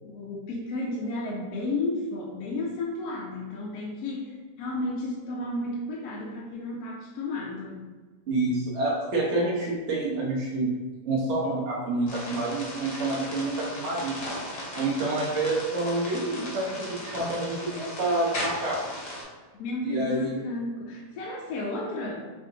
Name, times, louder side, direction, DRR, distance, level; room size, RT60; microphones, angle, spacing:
voice 1, 0.0-4.3 4.6-7.9 19.6-22.2, left 2 dB, 70° left, -2 dB, 1.0 m, -32 dB
voice 2, 8.3-10.7 11.1-14.2 14.7-18.8 19.8-20.5, right 2 dB, 55° right, -5 dB, 0.8 m, -28 dB
sound 1, 12.1-19.2, left 1 dB, 40° left, 0.9 m, -37 dB
3.7 x 2.4 x 3.8 m, 1.3 s
omnidirectional pair, 1.9 m